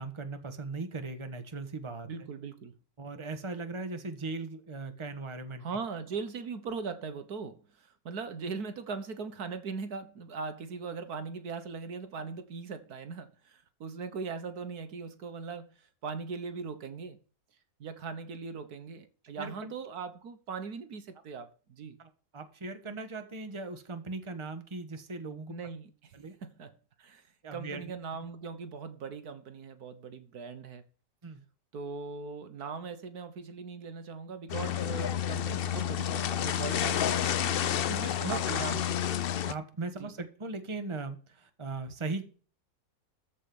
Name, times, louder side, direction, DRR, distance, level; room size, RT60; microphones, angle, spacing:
voice 1, 0.0-2.1 3.0-5.6 19.4-19.7 22.0-25.6 26.1-26.3 27.4-27.9 31.2-31.4 37.9-38.4 39.5-42.2, right 3 dB, 20° right, 1.4 m, -38 dB
voice 2, 2.1-2.7 5.6-17.2 17.8-22.0 25.5-26.7 27.0-30.8 31.7-37.9 38.3-39.1 40.0-40.1, right 5 dB, 75° right, 1.7 m, -40 dB
sound 1, 34.5-39.5, left 10 dB, 65° left, 0.5 m, -30 dB
14.0 x 5.3 x 7.1 m
omnidirectional pair, 1.7 m